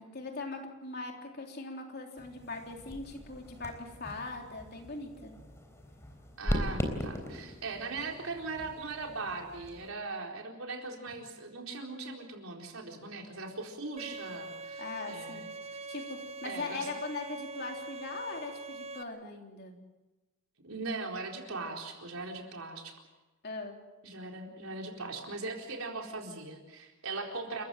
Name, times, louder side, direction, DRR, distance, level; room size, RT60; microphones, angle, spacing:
voice 1, 0.0-5.3 14.8-15.5 15.9-19.7 23.4-23.8, left 3 dB, 50° left, 2 dB, 3.5 m, -40 dB
sound 1, 2.2-9.9, equal, 15° left, 3.7 m, -39 dB
voice 2, 6.4-15.5 16.4-16.9 20.6-22.9 24.0-27.6, right 3 dB, 85° right, 1 dB, 4.2 m, -39 dB
Bowed string instrument, 14.0-19.0, right 3 dB, 30° right, 0.8 m, -43 dB
29.5 x 14.5 x 7.7 m, 1.1 s
head